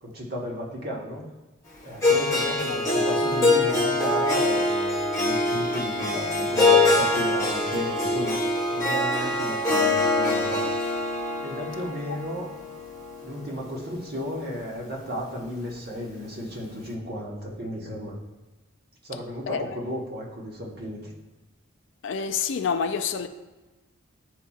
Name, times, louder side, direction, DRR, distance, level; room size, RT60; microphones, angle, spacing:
voice 1, 0.0-1.3 1.8-8.4 8.7-10.7 11.4-12.5 13.2-18.1 19.0-21.1, equal, 50° right, 1.3 m, -34 dB
Harp, 2.0-14.2, left 2 dB, 15° left, 1.1 m, -24 dB
voice 2, 2.7-3.1 12.1-12.2 19.5-19.8 22.0-23.3, left 6 dB, 60° left, 0.4 m, -28 dB
11.0 x 4.2 x 2.4 m
head